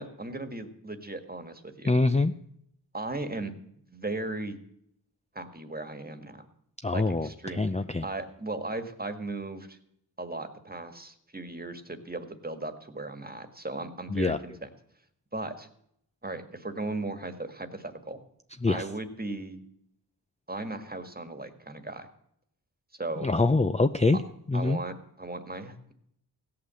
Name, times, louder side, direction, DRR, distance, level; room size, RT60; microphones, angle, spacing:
voice 1, 0.0-1.9 2.9-3.6 3.9-4.6 5.3-6.5 6.9-7.7 8.0-9.8 10.2-14.7 15.3-15.7 16.2-18.2 18.7-19.6 20.5-22.1 23.0-23.3 24.1-24.2 24.5-25.9, right 2 dB, 25° right, 8 dB, 1.6 m, -37 dB
voice 2, 1.9-2.3 6.8-7.3 7.6-8.0 14.1-14.4 18.6-18.8 23.2-24.2 24.5-24.8, left 3 dB, 15° left, 9 dB, 0.5 m, -24 dB
16.0 x 8.6 x 7.6 m, 0.72 s
wide cardioid pair, 60°, 40 cm